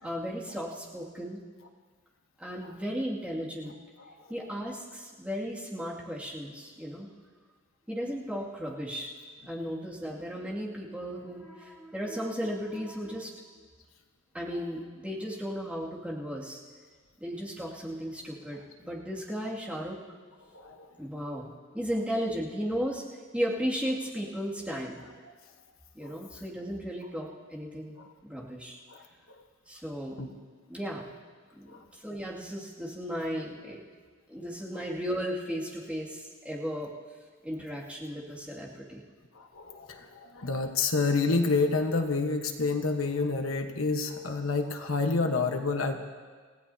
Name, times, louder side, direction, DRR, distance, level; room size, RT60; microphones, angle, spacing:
voice 1, 0.0-1.4 2.4-3.7 4.3-7.1 7.9-9.1 9.5-13.3 14.3-16.6 17.2-20.0 21.0-23.0 23.3-25.0 25.9-28.0 28.2-28.8 29.7-30.2 30.7-31.1 31.5-33.8 34.3-36.9 37.4-39.0, equal, 5° right, -5 dB, 2.3 m, -35 dB
voice 2, 20.5-20.9 26.0-26.2 28.9-29.0 30.2-30.3 31.7-31.8 39.3-45.9, left 3 dB, 85° left, 5 dB, 1.2 m, -28 dB
29.0 x 16.0 x 2.8 m, 1.5 s
head